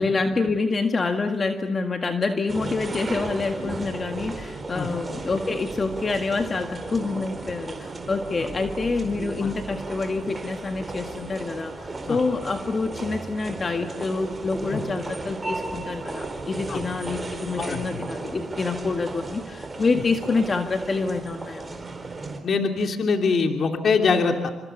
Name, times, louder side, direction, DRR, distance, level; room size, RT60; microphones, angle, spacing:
voice 1, 0.0-21.8, left 3 dB, 35° left, 5 dB, 1.8 m, -27 dB
sound 1, 2.5-22.4, right 3 dB, 25° right, 4.7 m, -35 dB
voice 2, 17.6-18.0 19.9-20.0 22.4-24.4, left 4 dB, 55° left, 4 dB, 3.0 m, -23 dB
29.5 x 26.5 x 7.0 m, 1.0 s
cardioid pair, 90°, 0 cm